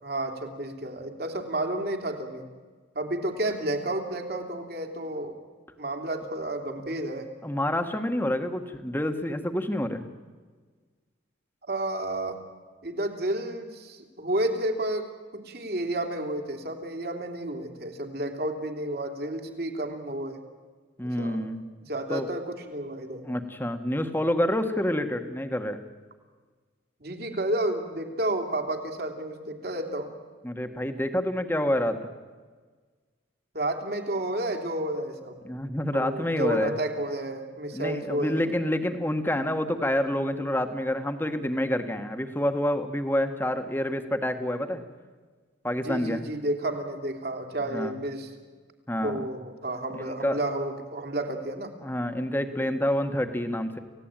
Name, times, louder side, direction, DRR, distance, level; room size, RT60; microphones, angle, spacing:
voice 1, 0.0-2.4 2.9-5.3 5.8-7.3 11.6-12.4 12.8-15.1 15.3-20.4 21.0-21.4 21.9-23.2 27.0-30.1 33.5-35.4 35.9-38.5 45.8-48.3 49.0-51.7, right 1 dB, 55° right, 4 dB, 3.1 m, -31 dB
voice 2, 7.4-10.0 21.0-21.6 22.1-22.3 23.2-25.8 30.4-32.0 35.4-36.7 37.7-44.8 45.6-46.2 47.7-47.9 48.9-49.3 49.9-50.4 51.8-53.8, left 1 dB, 10° left, 7 dB, 1.6 m, -28 dB
29.5 x 16.5 x 9.1 m, 1.5 s
head